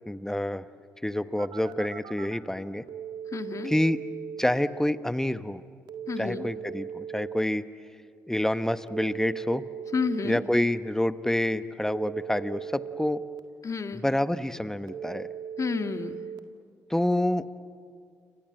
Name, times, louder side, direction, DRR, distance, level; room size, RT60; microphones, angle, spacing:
voice 1, 0.1-0.6 1.0-2.8 3.6-4.0 4.4-5.6 6.2-7.6 8.3-9.6 10.2-13.2 13.9-15.3 16.9-17.5, left 1 dB, 5° left, 12 dB, 1.2 m, -27 dB
Telephone, 1.4-2.4 2.9-4.4 5.9-7.4 8.9-10.4 11.9-13.4 14.9-16.4, right 8 dB, 70° right, 1.8 m, -38 dB
voice 2, 3.3-3.7 6.1-6.5 9.9-10.4 13.6-14.0 15.6-16.2, left 5 dB, 45° left, 8 dB, 1.9 m, -30 dB
29.5 x 25.0 x 7.8 m, 2.2 s
hypercardioid pair, 50°, 8 cm